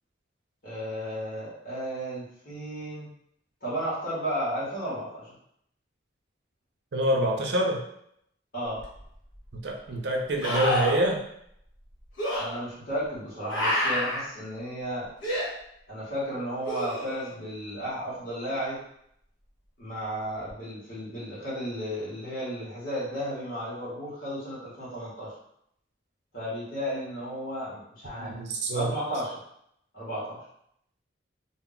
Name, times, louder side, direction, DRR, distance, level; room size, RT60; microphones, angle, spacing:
voice 1, 0.6-3.1 3.6-5.3 8.5-8.8 12.4-15.1 15.9-18.8 19.8-25.3 26.3-28.4 28.7-29.4 29.9-30.4, equal, 45° left, -10 dB, 1.0 m, -33 dB
voice 2, 6.9-7.8 9.5-11.2 28.1-28.9, right 1 dB, 60° right, 1 dB, 0.5 m, -26 dB
sound 1, 8.8-8.9 10.4-11.1 12.2-12.4 13.5-14.2 15.2-15.5 16.6-17.3 20.5-20.6, left 1 dB, 80° left, 1.0 m, -28 dB
2.2 x 2.0 x 3.7 m, 0.73 s
head